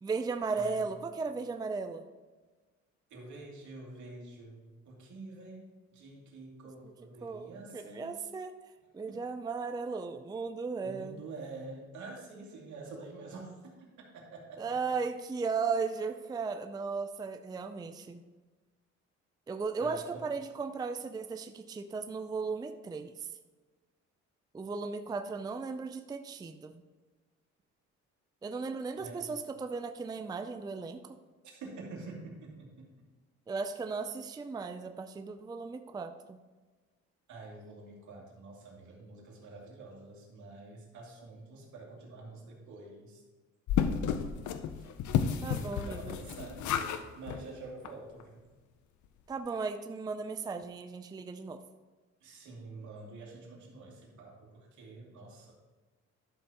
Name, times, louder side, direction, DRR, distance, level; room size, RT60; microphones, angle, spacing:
voice 1, 0.0-2.1 7.2-8.5 8.9-11.2 14.6-18.2 19.5-23.3 24.5-26.8 28.4-31.2 33.5-36.4 45.4-46.2 49.3-51.6, right 4 dB, 15° right, 7 dB, 0.4 m, -36 dB
voice 2, 0.5-0.9 3.1-8.1 9.1-9.2 10.8-13.7 14.1-14.8 19.8-20.2 29.0-29.3 31.4-32.7 37.3-43.2 44.8-44.9 45.3-48.4 52.2-55.5, right 3 dB, 80° right, -2 dB, 2.5 m, -47 dB
sound 1, 43.7-47.0 47.3-47.4 47.8-47.9 48.2-48.3, left 8 dB, 80° left, 0.7 m, -32 dB
11.5 x 6.8 x 2.9 m, 1.3 s
cardioid pair, 110°, 29 cm